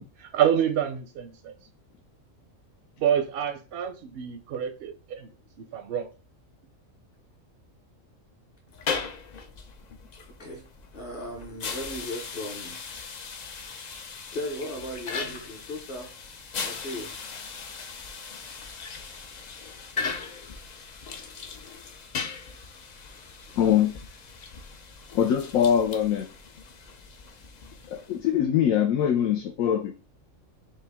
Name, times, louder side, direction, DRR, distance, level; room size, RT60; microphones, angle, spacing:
voice 1, 0.2-1.5 3.0-5.3 5.7-6.1, right 9 dB, 65° right, 0.7 m, -27 dB
sound 1, 8.7-28.3, left 5 dB, 60° left, 0.4 m, -38 dB
voice 2, 10.3-10.6 10.9-12.8 14.3-16.1 16.6-17.1 23.1-23.8, left 1 dB, 45° left, 1.0 m, -37 dB
voice 3, 23.6-23.9 25.1-26.3 27.9-29.9, left 9 dB, 85° left, 1.1 m, -23 dB
5.4 x 2.3 x 3.4 m
omnidirectional pair, 1.4 m